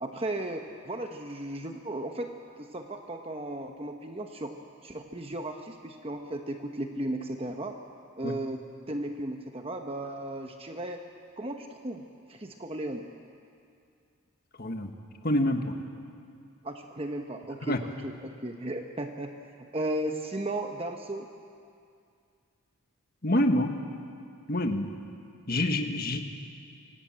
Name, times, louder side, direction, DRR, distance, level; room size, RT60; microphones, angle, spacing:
voice 1, 0.0-4.5 4.8-7.8 8.2-11.0 11.4-13.1 16.6-21.3, right 1 dB, 25° right, 4 dB, 1.0 m, -35 dB
voice 2, 15.2-15.7 17.7-17.8 23.2-23.7 24.5-24.9 25.5-26.2, left 1 dB, 45° left, 5 dB, 1.6 m, -26 dB
25.0 x 17.5 x 8.9 m, 2.3 s
head